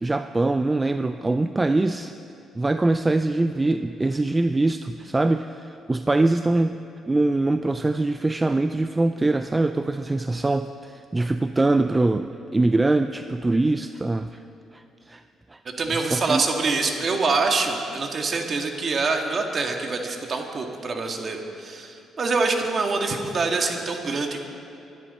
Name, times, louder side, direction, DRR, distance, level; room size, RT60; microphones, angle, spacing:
voice 1, 0.0-2.1 2.6-6.7 7.1-14.4 14.7-15.2 15.5-15.6 16.0-16.4, right 2 dB, 20° right, 9 dB, 0.4 m, -23 dB
voice 2, 15.8-24.4, right 3 dB, 45° right, 3 dB, 1.8 m, -25 dB
23.5 x 10.5 x 4.2 m, 2.7 s
cardioid pair, 90°, 0 cm